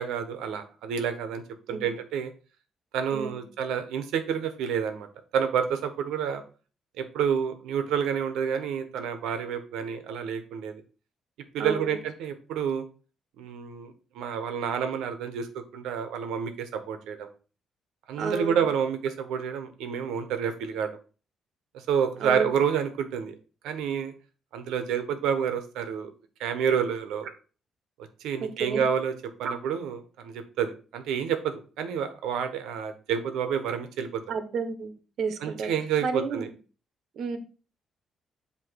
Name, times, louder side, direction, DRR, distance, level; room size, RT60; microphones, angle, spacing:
voice 1, 0.0-1.4 1.7-2.3 2.9-5.1 5.3-6.4 7.0-10.8 11.5-12.8 13.4-15.5 15.7-17.3 18.1-20.9 21.7-23.3 23.6-24.1 24.5-26.1 26.4-27.3 28.2-29.1 29.4-34.2 35.4-36.5, right 7 dB, 90° right, 8 dB, 1.2 m, -29 dB
voice 2, 11.6-12.0 18.2-18.7 22.2-22.4 28.4-28.9 34.3-35.7 36.0-36.4 37.2-37.4, right 5 dB, 70° right, 9 dB, 1.4 m, -31 dB
7.9 x 3.2 x 6.3 m, 0.36 s
cardioid pair, 90°, 0 cm